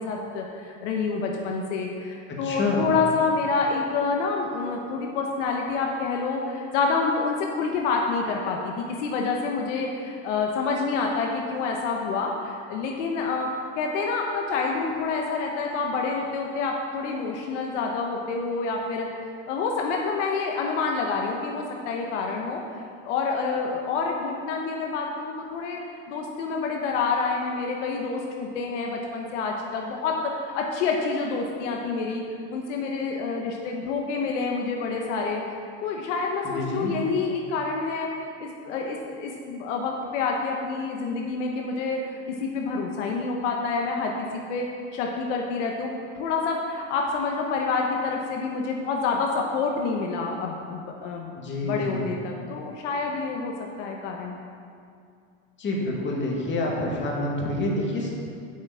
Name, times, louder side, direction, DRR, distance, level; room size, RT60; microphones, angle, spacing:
voice 1, 0.0-19.1 19.5-22.6 23.0-32.2 32.5-35.4 35.8-51.3 51.6-54.3, left 4 dB, 80° left, 1 dB, 1.1 m, -28 dB
voice 2, 2.3-2.9 36.5-36.9 51.4-52.1 55.6-58.1, left 2 dB, 30° left, -2 dB, 2.2 m, -27 dB
8.0 x 5.9 x 7.0 m, 2.3 s
supercardioid pair, 110°, 36 cm